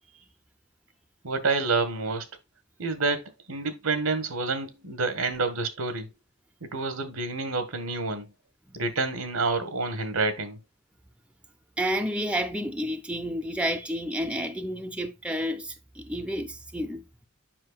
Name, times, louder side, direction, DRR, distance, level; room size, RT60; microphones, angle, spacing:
voice 1, 1.2-2.3 2.8-6.1 6.6-8.3 8.7-10.6, right 3 dB, 80° right, 1.3 m, -28 dB
voice 2, 11.8-17.0, equal, 5° right, 0.6 m, -30 dB
7.6 x 5.7 x 2.3 m
head